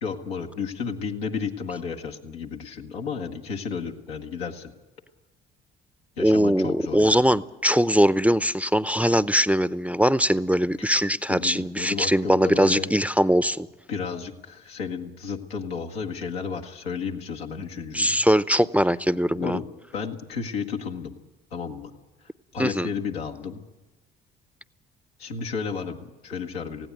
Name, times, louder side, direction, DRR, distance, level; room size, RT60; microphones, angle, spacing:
voice 1, 0.0-4.7 6.2-7.4 10.8-11.0 11.3-12.9 13.9-18.2 19.3-19.6 19.9-21.1 21.5-21.9 22.5-23.6 25.2-26.9, left 5 dB, 90° left, 1 dB, 1.5 m, -32 dB
voice 2, 6.2-13.7 17.9-19.6 22.6-22.9, equal, 5° right, 16 dB, 0.6 m, -21 dB
18.5 x 16.5 x 9.3 m, 1.1 s
hypercardioid pair, 50°, 30 cm